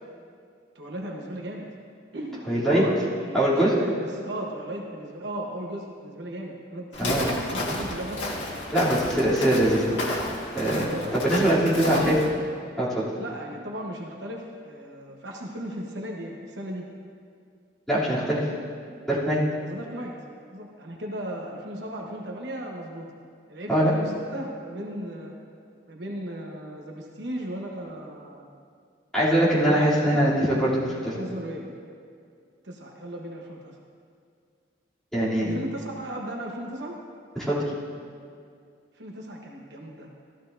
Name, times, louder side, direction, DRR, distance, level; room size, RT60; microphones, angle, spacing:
voice 1, 0.7-1.7 2.1-8.3 10.9-11.2 11.5-12.3 13.2-16.9 19.6-20.1 20.5-23.1 23.5-25.3 25.9-28.5 29.3-30.2 31.2-31.7 32.6-33.8 35.4-37.0 38.9-40.2, right 1 dB, 65° right, 0 dB, 1.1 m, -36 dB
voice 2, 2.5-2.8 3.3-3.7 7.0-7.3 8.7-9.8 10.1-10.2 10.5-12.2 12.8-13.0 17.9-18.4 19.1-19.4 23.7-23.9 29.1-31.1 35.1-35.6 37.3-37.6, right 1 dB, ahead, -12 dB, 2.9 m, -22 dB
Walk footsteps, 6.9-12.3, left 1 dB, 85° left, 1.6 m, -31 dB
14.0 x 12.5 x 2.6 m, 2.2 s
head